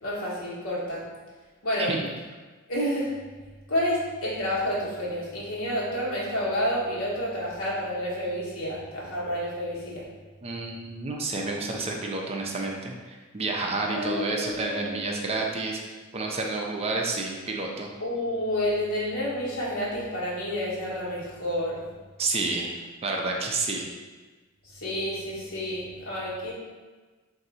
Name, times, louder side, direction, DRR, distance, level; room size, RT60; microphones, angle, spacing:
voice 1, 0.0-1.1 1.6-1.9 2.7-3.2 3.7-10.1 13.9-14.9 18.0-21.9 24.6-26.5, equal, 75° left, -6 dB, 1.3 m, -29 dB
voice 2, 10.4-15.8 16.1-17.9 22.2-23.9, right 3 dB, 30° right, 0 dB, 0.4 m, -30 dB
3.8 x 2.6 x 4.1 m, 1.3 s
head